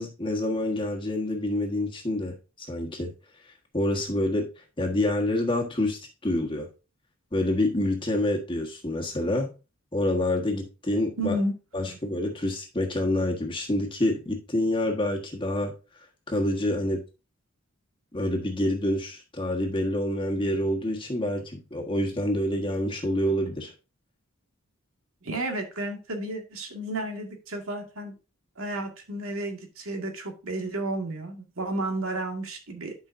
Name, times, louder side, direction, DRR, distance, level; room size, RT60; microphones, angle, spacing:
voice 1, 0.0-3.1 3.7-4.5 4.8-6.7 7.3-9.5 9.9-11.4 11.7-15.7 16.3-17.0 18.1-23.7, left 1 dB, 25° left, 1 dB, 1.5 m, -27 dB
voice 2, 11.2-11.5 11.9-12.0 25.2-28.1 28.6-32.9, right 1 dB, 80° right, 3 dB, 2.0 m, -32 dB
11.5 x 5.5 x 2.7 m, 0.31 s
head